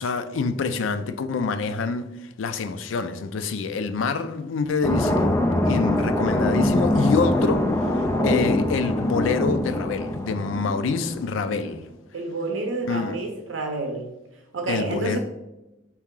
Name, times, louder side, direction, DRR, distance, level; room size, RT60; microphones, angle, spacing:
voice 1, 0.0-2.1 2.4-7.6 8.2-11.9 12.9-13.2 14.7-15.2, left 4 dB, 90° left, 0.4 m, -26 dB
sound 1, 4.8-11.2, left 1 dB, 15° left, 0.4 m, -23 dB
voice 2, 12.1-14.1 14.5-15.2, right 2 dB, 75° right, 0.6 m, -29 dB
4.5 x 3.0 x 3.7 m
head